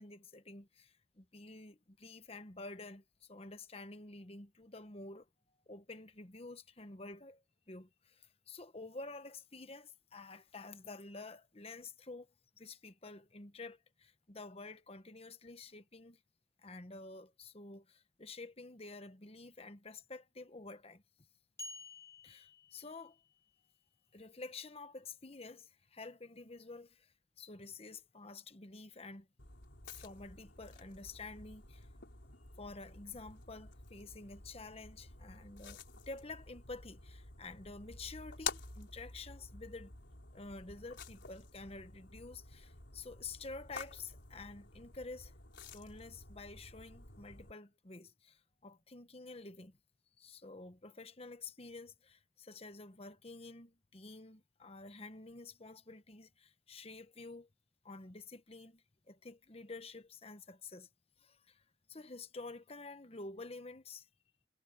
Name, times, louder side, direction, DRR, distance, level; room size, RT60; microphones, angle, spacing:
voice 1, 0.0-5.3 5.7-12.3 12.6-16.2 16.6-21.0 22.2-23.2 24.1-29.3 29.8-31.9 32.6-35.8 36.1-39.9 40.3-45.3 45.7-49.8 50.2-57.5 57.8-60.9 61.2-61.6 61.9-64.1, left 3 dB, 35° left, 1.1 m, -50 dB
sound 1, 21.6-23.4, left 2 dB, 15° left, 1.2 m, -51 dB
sound 2, 29.4-47.5, left 5 dB, 80° left, 4.5 m, -50 dB
head